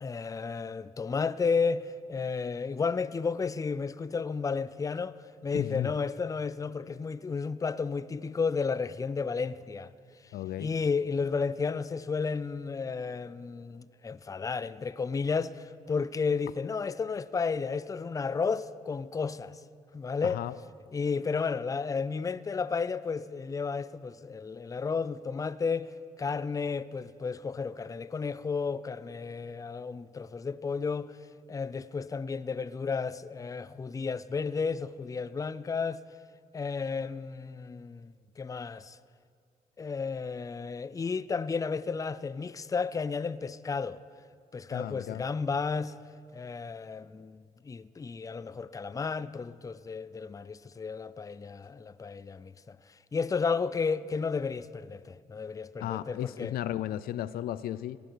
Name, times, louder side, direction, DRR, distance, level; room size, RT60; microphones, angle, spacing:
voice 1, 0.0-5.2 5.4-9.9 10.6-19.6 19.9-20.4 20.9-31.2 31.5-36.0 36.5-39.0 39.8-44.0 44.5-45.9 46.3-52.8 53.1-56.6, left 5 dB, 25° left, 0.4 m, -32 dB
voice 2, 5.5-5.9 10.3-10.7 20.2-20.5 44.7-45.3 55.8-58.0, left 12 dB, 90° left, 0.4 m, -34 dB
18.5 x 11.5 x 4.6 m
cardioid pair, 80°, 15 cm